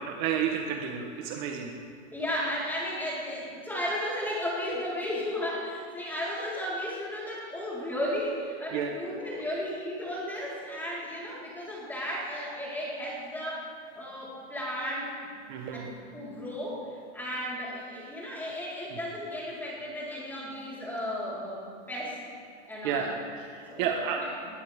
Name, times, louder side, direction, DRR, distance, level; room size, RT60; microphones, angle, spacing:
voice 1, 0.0-1.7 8.7-8.9 15.5-15.9 22.8-23.1 23.4-24.2, right 8 dB, 40° right, 3 dB, 1.3 m, -31 dB
voice 2, 2.1-15.1 15.7-15.9 16.1-22.2 22.7-23.1 23.7-24.3, equal, 5° left, -7 dB, 4.4 m, -34 dB
21.0 x 15.0 x 3.6 m, 2.4 s
supercardioid pair, 150°, 36 cm